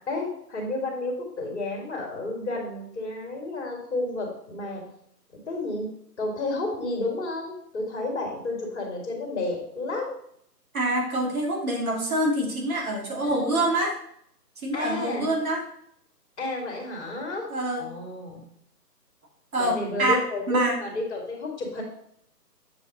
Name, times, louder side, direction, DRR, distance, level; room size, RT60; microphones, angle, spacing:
voice 1, 0.1-4.8 5.5-5.9 6.2-10.1 13.2-13.6 14.7-15.3 16.4-17.5 17.8-18.4 19.6-21.8, left 2 dB, 45° left, 1 dB, 2.3 m, -31 dB
voice 2, 10.7-13.9 14.6-15.6 17.5-17.8 19.5-20.2 20.5-20.8, right 1 dB, 55° right, 0 dB, 2.2 m, -25 dB
7.5 x 5.0 x 3.9 m, 0.70 s
figure-of-eight pair, 155°, 49 cm